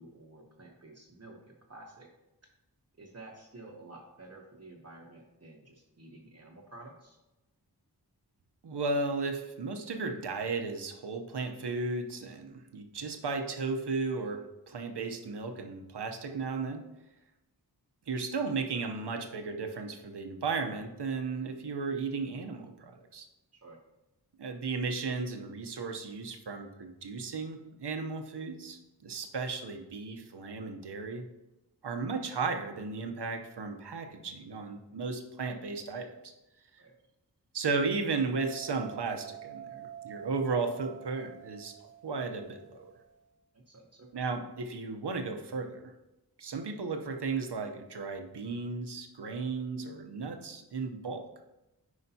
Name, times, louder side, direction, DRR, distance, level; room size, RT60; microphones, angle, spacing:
voice 1, 0.0-2.1 3.0-7.2 23.5-23.8 36.8-37.0 43.5-44.3, right 2 dB, 40° right, -1 dB, 0.9 m, -51 dB
voice 2, 8.6-16.8 18.1-23.3 24.4-31.2 31.8-36.3 36.7-36.8 37.5-41.8 42.0-42.9 44.1-45.9 46.4-51.5, right 4 dB, 85° right, 5 dB, 0.8 m, -35 dB
sound 1, 38.3-43.1, right 9 dB, 85° left, 0.9 m, -48 dB
9.7 x 5.0 x 2.8 m, 0.97 s
wide cardioid pair, 75°, 40 cm